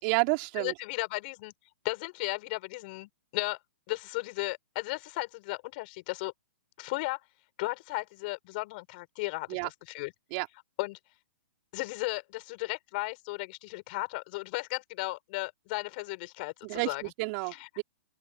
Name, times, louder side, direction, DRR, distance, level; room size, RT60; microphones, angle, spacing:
voice 1, 0.0-0.7 9.5-9.7 10.3-10.5 16.6-17.8, right 31 dB, 40° right, 3.9 m, -30 dB
voice 2, 0.6-1.5 1.8-3.6 3.9-6.3 6.8-7.2 7.6-10.1 10.8-11.0 11.7-17.0 17.6-17.7, left 24 dB, 45° left, 5.4 m, -35 dB
open air
hypercardioid pair, 135°, 7 cm